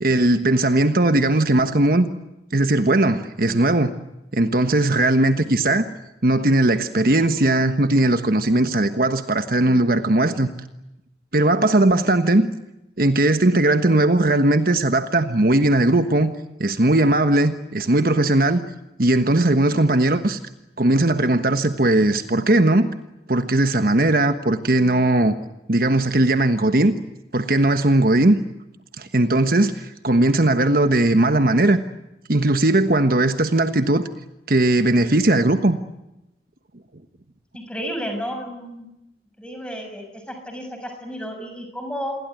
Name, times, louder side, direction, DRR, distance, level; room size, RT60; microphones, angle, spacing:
voice 1, 0.0-2.1 2.5-4.0 4.3-5.8 6.2-10.5 11.3-12.5 13.0-16.3 16.6-18.6 19.0-20.4 20.8-22.9 23.3-25.3 25.7-26.9 27.3-28.4 29.0-31.8 32.3-34.1 34.5-35.8, right 2 dB, 55° right, 9 dB, 1.3 m, -18 dB
voice 2, 37.5-38.9 39.4-42.1, equal, 5° left, 5 dB, 6.4 m, -32 dB
28.5 x 22.0 x 9.2 m, 0.91 s
head